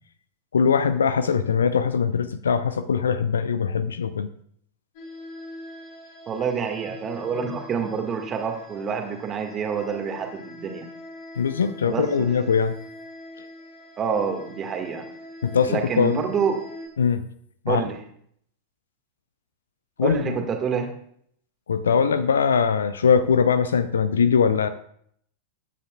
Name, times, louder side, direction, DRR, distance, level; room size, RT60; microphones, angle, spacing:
voice 1, 0.5-4.3 11.4-12.8 15.4-16.2 17.0-17.2 17.7-17.8 20.0-20.4 21.7-24.7, left 6 dB, 70° left, 14 dB, 0.6 m, -21 dB
sound 1, 4.9-16.9, left 1 dB, 50° left, 4.3 m, -43 dB
voice 2, 6.3-10.8 11.9-12.3 14.0-15.1 15.7-16.6 17.7-18.0 20.0-20.9, right 6 dB, 25° right, 4 dB, 1.8 m, -27 dB
20.5 x 9.5 x 2.4 m, 0.65 s
figure-of-eight pair, 90°, 0 cm